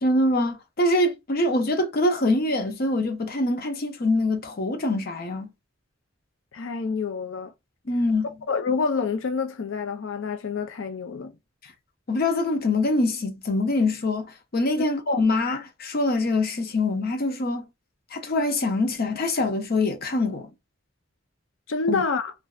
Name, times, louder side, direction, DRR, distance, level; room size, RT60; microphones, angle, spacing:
voice 1, 0.0-5.5 7.9-8.4 12.1-17.6 18.1-20.5 21.9-22.0, left 2 dB, 50° left, 0.7 m, -24 dB
voice 2, 6.5-7.5 8.5-11.4 21.7-22.3, left 4 dB, 90° left, 0.5 m, -27 dB
2.6 x 2.3 x 2.3 m
head